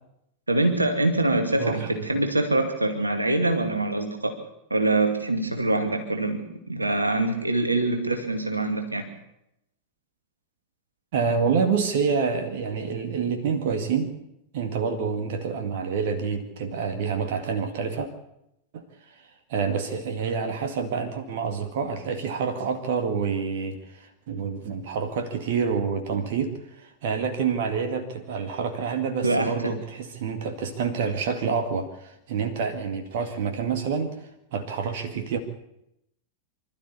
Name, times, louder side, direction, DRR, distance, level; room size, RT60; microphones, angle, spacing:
voice 1, 0.5-4.4 4.7-9.1 29.2-29.8, right 2 dB, 80° right, 5 dB, 2.4 m, -24 dB
voice 2, 1.6-2.1 11.1-14.1 14.5-18.1 18.7-34.2 34.5-35.4, right 5 dB, 55° right, 6 dB, 2.2 m, -28 dB
25.0 x 13.0 x 8.5 m, 0.82 s
figure-of-eight pair, 90°, 0 cm